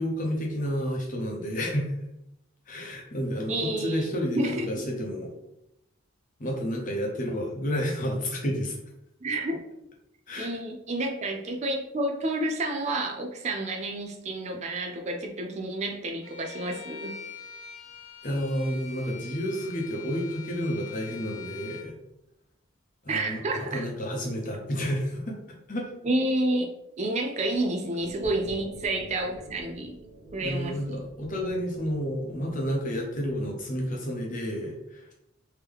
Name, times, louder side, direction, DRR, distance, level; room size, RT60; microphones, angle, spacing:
voice 1, 0.0-1.9 2.7-5.3 6.4-8.8 10.3-10.5 18.2-21.9 23.0-25.4 25.7-25.9 30.4-35.1, equal, 40° left, 0 dB, 0.8 m, -30 dB
voice 2, 3.5-4.1 4.3-4.9 9.2-9.6 10.4-17.2 23.1-23.9 26.0-26.7 27.0-30.0 30.3-31.0, right 1 dB, 30° right, 3 dB, 0.3 m, -30 dB
Bowed string instrument, 16.2-21.9, left 6 dB, 90° left, 0.9 m, -44 dB
sound 1, 28.0-33.6, right 2 dB, ahead, 1.2 m, -47 dB
3.6 x 2.9 x 3.4 m, 0.85 s
head